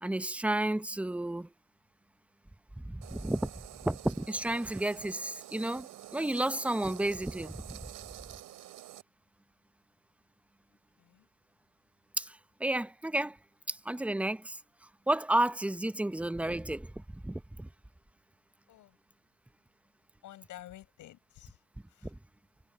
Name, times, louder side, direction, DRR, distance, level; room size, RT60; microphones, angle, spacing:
voice 1, 0.0-1.5 2.8-3.5 3.8-7.8 12.2-13.4 13.7-14.6 15.1-17.7 22.0-22.2, right 1 dB, 5° right, 0.7 m, -32 dB
sound 1, 3.0-9.0, right 14 dB, 85° right, 3.2 m, -49 dB
voice 2, 20.2-21.6 21.9-22.1, left 13 dB, 85° left, 7.0 m, -51 dB
cardioid pair, 90°, 30 cm